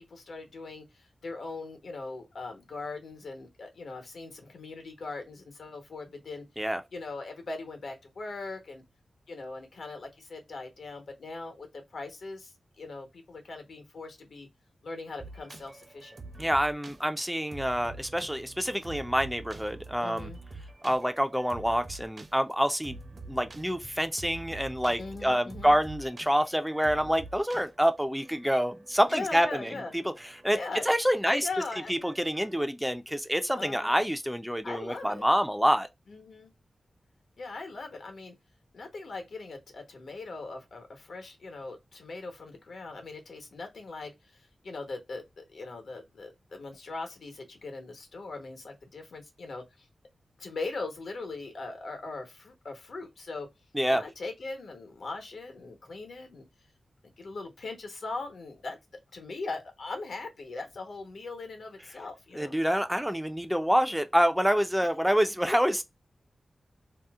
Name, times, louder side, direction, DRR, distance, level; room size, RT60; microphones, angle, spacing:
voice 1, 0.0-6.4 6.9-8.8 9.3-14.5 14.8-16.2 20.0-20.4 25.0-25.8 29.1-29.9 30.5-31.0 31.2-31.9 33.6-34.0 34.6-35.2 36.1-36.5 37.4-38.3 38.7-49.9 50.4-53.5 53.9-56.4 57.2-58.8 59.1-62.5 65.5-65.6, left 3 dB, 75° left, 1.1 m, -40 dB
sound 1, 15.2-32.6, right 3 dB, 50° right, 0.7 m, -47 dB
voice 2, 16.4-20.3 20.8-23.0 23.3-29.7 30.0-30.1 30.4-30.6 30.9-31.5 31.9-35.9 53.7-54.0 62.4-65.8, equal, 5° right, 0.3 m, -27 dB
2.7 x 2.1 x 3.5 m
wide cardioid pair, 115°, 0 cm